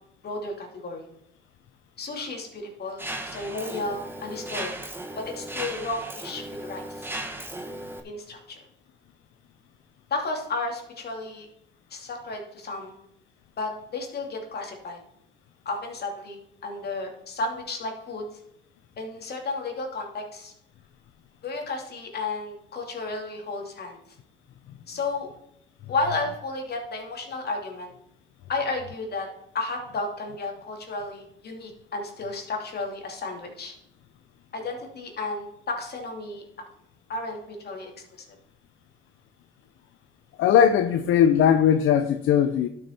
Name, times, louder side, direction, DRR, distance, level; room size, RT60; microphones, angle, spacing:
voice 1, 0.2-1.1 2.0-4.7 5.2-7.1 8.0-8.6 10.1-11.5 11.9-13.0 13.6-15.0 15.6-18.3 19.0-20.5 21.4-24.0 24.9-25.3 25.9-27.9 28.5-29.3 29.5-33.7 34.5-36.4 37.1-37.9, left 3 dB, 55° left, 2 dB, 2.7 m, -33 dB
Mechanisms, 3.0-8.0, right 1 dB, 10° right, 1.4 m, -36 dB
voice 2, 40.4-42.7, left 8 dB, 80° left, 9 dB, 0.6 m, -19 dB
12.0 x 6.5 x 4.4 m, 0.76 s
cardioid pair, 90°, 20 cm